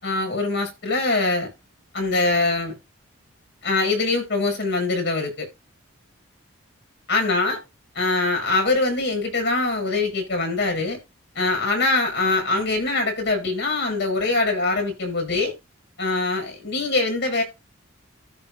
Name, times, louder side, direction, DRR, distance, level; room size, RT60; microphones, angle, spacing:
voice 1, 0.0-1.5 1.9-2.8 3.6-5.5 7.1-7.6 7.9-11.0 11.3-15.5 16.0-17.4, left 3 dB, 55° left, 6.8 m, -23 dB
14.0 x 5.6 x 2.7 m
head